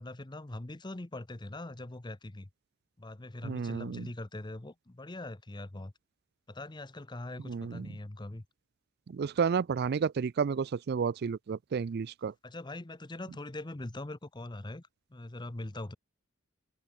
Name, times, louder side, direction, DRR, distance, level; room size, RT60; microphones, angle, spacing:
voice 1, 0.0-2.5 3.0-5.9 6.5-8.4 12.4-16.0, left 2 dB, 20° left, 0.8 m, -42 dB
voice 2, 3.4-4.1 7.5-7.9 9.1-12.3, right 6 dB, 50° right, 0.4 m, -31 dB
head